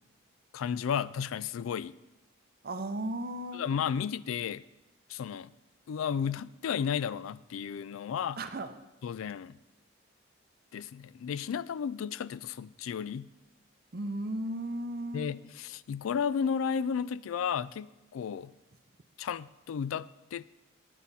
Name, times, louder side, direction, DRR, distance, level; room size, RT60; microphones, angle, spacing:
voice 1, 0.5-1.9 3.5-4.6 5.1-5.5 5.9-8.4 9.0-9.6 10.7-13.3 15.1-17.9 18.1-18.5 19.2-20.4, left 7 dB, 80° left, 0.3 m, -33 dB
voice 2, 2.6-3.6 8.4-8.7 13.9-15.3, right 1 dB, 45° right, 0.7 m, -35 dB
10.0 x 9.9 x 4.1 m
head